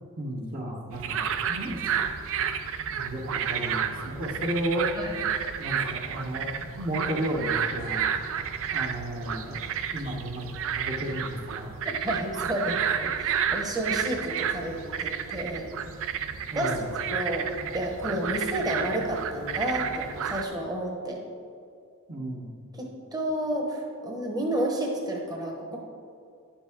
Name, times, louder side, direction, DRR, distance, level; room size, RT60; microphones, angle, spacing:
voice 1, 0.2-1.9 2.9-4.9 5.6-8.1 8.7-9.7 9.9-11.8 16.5-16.9 22.1-22.6, right 1 dB, 40° right, -1 dB, 1.0 m, -33 dB
sound 1, 0.9-20.4, right 8 dB, 65° right, 0.5 m, -31 dB
voice 2, 11.8-12.9 13.2-15.7 16.5-16.7 17.1-21.2 22.8-25.8, right 1 dB, 20° right, 0 dB, 1.0 m, -31 dB
10.5 x 7.2 x 3.6 m, 2.3 s
head